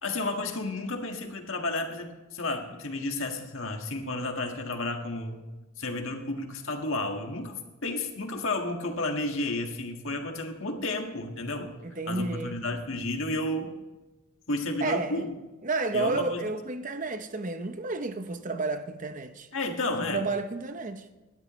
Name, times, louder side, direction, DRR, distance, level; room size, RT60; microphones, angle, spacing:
voice 1, 0.0-5.4 5.8-7.5 7.8-11.7 12.0-13.7 14.5-15.3 15.9-16.4 19.5-20.2, left 2 dB, 60° left, 1.8 m, -32 dB
voice 2, 11.8-12.6 14.8-15.2 15.6-19.5 19.9-21.0, right 3 dB, 35° right, 0.7 m, -31 dB
19.5 x 13.0 x 3.2 m
head